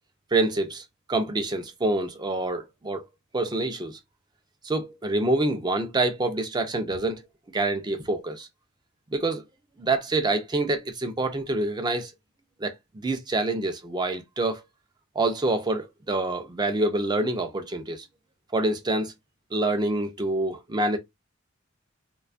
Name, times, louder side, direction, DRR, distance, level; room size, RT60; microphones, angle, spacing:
voice 1, 0.3-0.8 1.1-3.1 3.3-4.0 4.6-7.2 7.5-8.5 9.1-9.4 9.8-12.1 12.6-14.6 15.2-18.1 18.5-19.1 19.5-21.0, right 2 dB, 20° right, 0.4 m, -26 dB
2.4 x 2.2 x 2.4 m
head